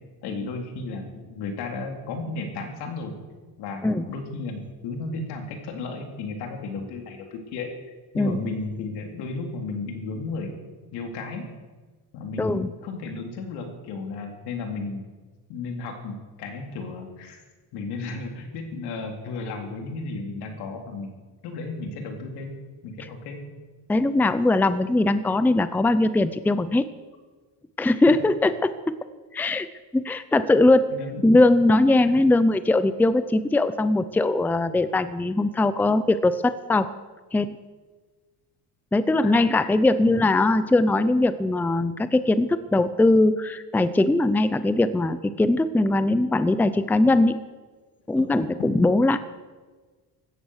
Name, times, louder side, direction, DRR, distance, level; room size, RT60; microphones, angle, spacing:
voice 1, 0.2-3.2 3.6-7.7 8.1-10.6 10.9-11.4 12.1-15.1 15.5-17.4 17.7-21.1 21.4-22.6 22.8-23.4 30.9-31.2 32.0-32.2 39.2-39.3 40.0-40.1 48.2-48.4, left 3 dB, 85° left, 3 dB, 3.6 m, -34 dB
voice 2, 12.4-12.7 23.9-26.8 27.8-28.9 29.3-29.7 29.9-30.9 31.2-36.9 37.3-37.6 38.9-47.4 48.1-49.2, left 2 dB, 5° left, 13 dB, 0.5 m, -20 dB
16.5 x 13.5 x 6.5 m, 1.3 s
cardioid pair, 140°, 38 cm